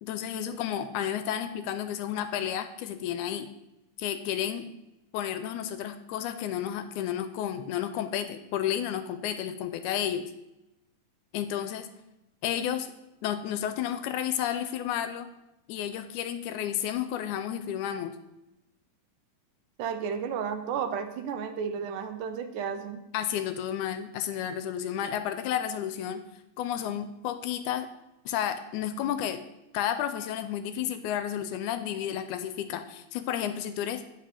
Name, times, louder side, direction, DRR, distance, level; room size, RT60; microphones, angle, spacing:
voice 1, 0.0-3.5 4.0-4.6 5.1-10.3 11.3-11.9 12.4-12.9 13.2-15.3 15.7-18.2 23.1-26.2 26.6-27.9 28.3-29.4 29.7-34.0, left 10 dB, 80° left, 10 dB, 1.9 m, -31 dB
voice 2, 19.8-23.0, right 7 dB, 80° right, 7 dB, 2.2 m, -33 dB
9.0 x 5.4 x 5.0 m, 0.93 s
omnidirectional pair, 3.7 m